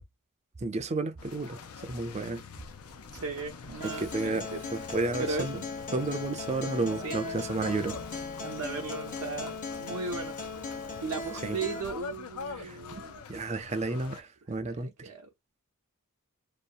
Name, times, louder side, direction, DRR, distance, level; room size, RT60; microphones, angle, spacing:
voice 1, 0.6-2.4 3.8-5.6 5.9-8.0 11.4-11.6 12.5-12.8 13.3-15.1, right 3 dB, 30° right, 0.5 m, -32 dB
sound 1, 1.2-14.2, left 5 dB, 80° left, 0.6 m, -44 dB
voice 2, 3.1-4.6 5.2-5.5 7.0-7.2 8.4-10.4 11.0-13.2 14.6-15.3, right 3 dB, 70° right, 0.7 m, -36 dB
Acoustic guitar, 3.8-11.8, left 3 dB, 35° left, 0.7 m, -38 dB
2.7 x 2.1 x 2.5 m
head